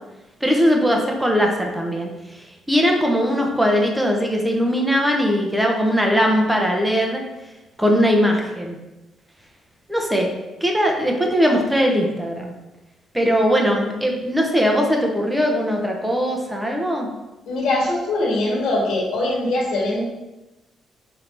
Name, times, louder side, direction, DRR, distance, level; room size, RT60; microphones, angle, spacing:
voice 1, 0.4-7.2 7.8-8.8 9.9-10.3 10.6-12.5 13.1-17.1, equal, 5° right, 1 dB, 0.6 m, -20 dB
voice 2, 17.5-20.0, left 2 dB, 80° left, -3 dB, 1.3 m, -22 dB
4.5 x 3.2 x 2.6 m, 1.0 s
cardioid pair, 125°, 0 cm